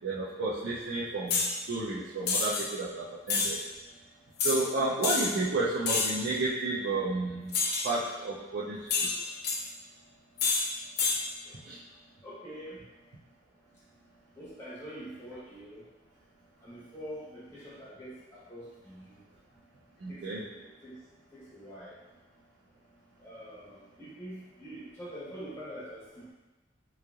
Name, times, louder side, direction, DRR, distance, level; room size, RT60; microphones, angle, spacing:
voice 1, 0.0-3.6 4.4-7.5 7.8-9.1 11.6-11.8 20.0-20.4, right 2 dB, 85° right, -8 dB, 0.6 m, -32 dB
sound 1, 1.3-1.5 2.3-2.6 3.3-3.5 4.4-4.6 5.0-5.3 5.9-6.2 7.5-7.9 8.9-9.6 10.4-10.6 11.0-11.2, left 4 dB, 55° left, 0.6 m, -28 dB
voice 2, 12.2-12.8 14.3-15.8 16.6-19.2 20.1-21.0 21.3-22.0 23.2-26.3, equal, 15° left, -10 dB, 1.3 m, -45 dB
3.8 x 3.1 x 2.4 m, 1.1 s
head